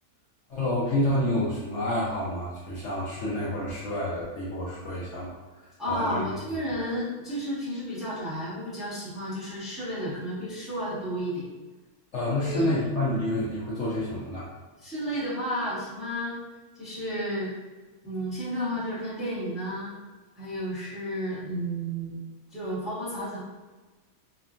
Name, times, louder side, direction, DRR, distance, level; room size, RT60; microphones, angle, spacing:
voice 1, 0.5-6.3 12.1-14.6, left 1 dB, 65° left, -7 dB, 0.8 m, -29 dB
voice 2, 5.8-11.5 12.2-12.7 14.8-16.4 16.7-17.5 18.0-19.9 20.4-22.1 22.5-23.4, equal, ahead, -10 dB, 1.0 m, -32 dB
2.8 x 2.4 x 2.4 m, 1.3 s
omnidirectional pair, 1.5 m